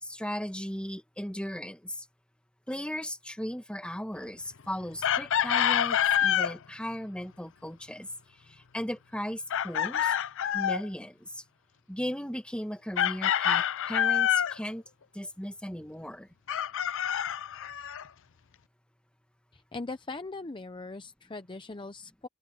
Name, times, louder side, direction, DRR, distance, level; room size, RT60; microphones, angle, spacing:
voice 1, 0.0-2.1 2.7-8.1 8.4-10.2 10.5-11.4 11.9-14.8 15.1-16.3, equal, 5° left, 1.9 m, -37 dB
Chicken rooster, 5.0-6.5 9.5-10.9 13.0-14.6 16.5-18.0, left 10 dB, 60° left, 0.6 m, -27 dB
voice 2, 19.5-22.3, left 3 dB, 20° left, 0.7 m, -40 dB
head